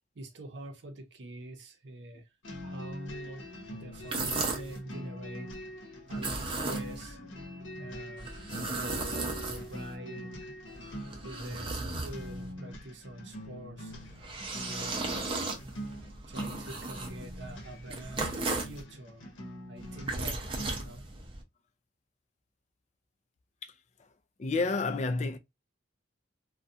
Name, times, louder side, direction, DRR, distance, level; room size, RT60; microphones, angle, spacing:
voice 1, 0.1-2.3 2.6-5.5 5.8-7.2 7.8-10.3 11.2-13.9 14.5-15.2 15.6-15.8 16.3-19.3 19.7-21.0, right 1 dB, 65° right, 0.7 m, -45 dB
sound 1, 2.4-21.0, equal, 85° left, 0.8 m, -43 dB
sound 2, 3.9-4.8 6.1-7.1 8.2-9.9 10.7-12.5 13.9-18.8 19.8-21.4, right 3 dB, 30° right, 0.5 m, -36 dB
voice 2, 23.6-24.1 24.4-25.4, left 3 dB, 35° left, 0.3 m, -31 dB
2.4 x 2.2 x 2.6 m
head